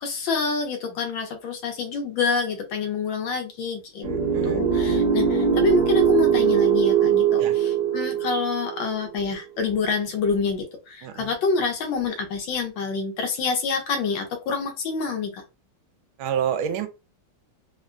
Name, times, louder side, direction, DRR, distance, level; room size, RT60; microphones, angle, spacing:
voice 1, 0.0-4.1 4.4-15.4, left 4 dB, 70° left, 1.4 m, -27 dB
sound 1, 4.0-9.1, right 8 dB, 50° right, 1.3 m, -21 dB
voice 2, 4.0-4.7 7.4-7.6 11.0-11.3 16.2-16.9, right 8 dB, 80° right, 1.4 m, -29 dB
3.6 x 2.2 x 2.5 m
omnidirectional pair, 2.2 m